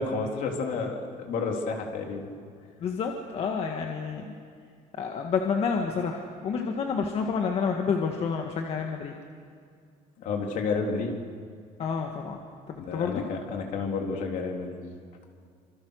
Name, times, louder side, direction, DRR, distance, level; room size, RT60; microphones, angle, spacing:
voice 1, 0.0-2.3 10.2-11.2 12.9-14.8, left 4 dB, 65° left, 2 dB, 3.7 m, -30 dB
voice 2, 2.8-4.3 4.9-9.1 11.8-12.4 12.7-13.2, left 5 dB, 45° left, 2 dB, 1.8 m, -29 dB
27.0 x 26.5 x 6.6 m, 2.2 s
cardioid pair, 175°, 15 cm